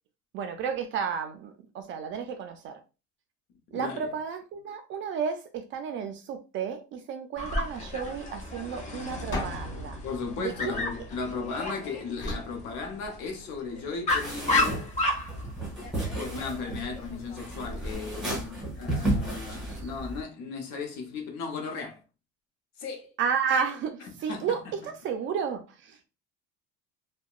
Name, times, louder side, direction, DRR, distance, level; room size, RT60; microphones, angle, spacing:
voice 1, 0.3-2.8 3.7-10.0 10.4-10.8 19.7-19.8 23.2-26.1, right 6 dB, 45° right, 0.4 m, -32 dB
voice 2, 3.7-4.1 10.0-14.8 16.1-22.0 22.8-23.1 24.3-24.7, left 4 dB, 65° left, 0.8 m, -36 dB
Dog, 7.4-17.9, left 2 dB, 25° left, 0.6 m, -33 dB
sound 1, 9.3-11.5 12.2-13.6, left 1 dB, 40° left, 1.2 m, -38 dB
sound 2, 14.1-20.2, right 1 dB, ahead, 1.2 m, -33 dB
2.7 x 2.2 x 2.3 m
cardioid pair, 130°, 29 cm